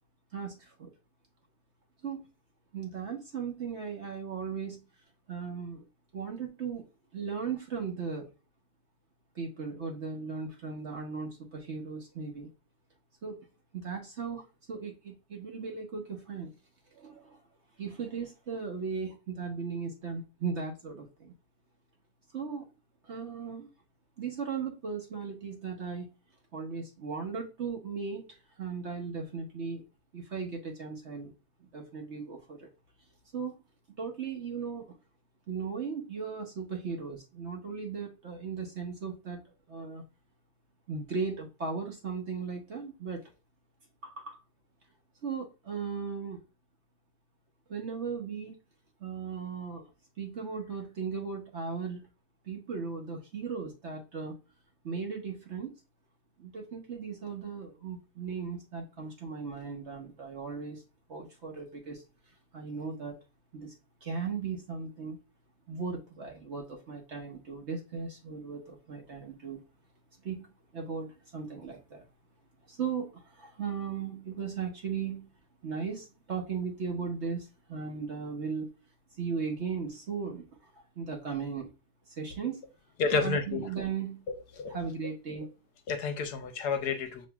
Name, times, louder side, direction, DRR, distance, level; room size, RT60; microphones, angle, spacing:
voice 1, 0.3-0.9 2.0-2.2 2.7-4.8 5.3-5.9 6.1-6.8 7.1-8.3 9.3-12.5 13.2-13.4 13.7-16.5 16.9-17.4 17.8-21.3 22.3-22.7 23.0-23.7 24.2-26.1 26.5-29.8 30.1-31.3 31.6-32.7 33.3-33.6 34.0-35.0 35.5-39.4 39.7-40.0 40.9-43.2 44.0-44.4 45.2-46.4 47.7-48.6 49.0-49.9 50.2-52.0 52.4-54.3 54.8-55.8 56.4-60.8 61.1-63.2 63.5-63.7 64.0-65.2 65.7-69.6 70.2-72.0 72.7-75.3 75.6-78.7 79.1-81.7 82.1-82.6 83.1-84.2 84.7-85.5, right 5 dB, 50° right, 1.0 m, -37 dB
voice 2, 83.0-83.6 84.6-84.8 85.9-87.2, left 5 dB, 70° left, 1.1 m, -30 dB
7.1 x 3.0 x 2.3 m
omnidirectional pair, 1.9 m